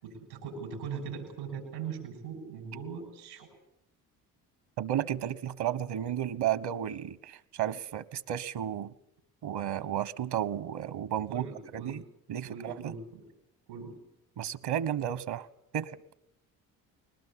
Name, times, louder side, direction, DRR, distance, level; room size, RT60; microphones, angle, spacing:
voice 1, 0.0-3.5 11.3-12.0 12.4-13.2 13.7-14.0, right 6 dB, 90° right, 0 dB, 6.6 m, -40 dB
voice 2, 4.8-8.9 9.4-11.4 11.7-12.0 12.3-12.9 14.4-15.5 15.7-15.9, right 10 dB, 65° right, 17 dB, 1.3 m, -33 dB
21.5 x 19.5 x 8.7 m, 0.82 s
hypercardioid pair, 60°, 43 cm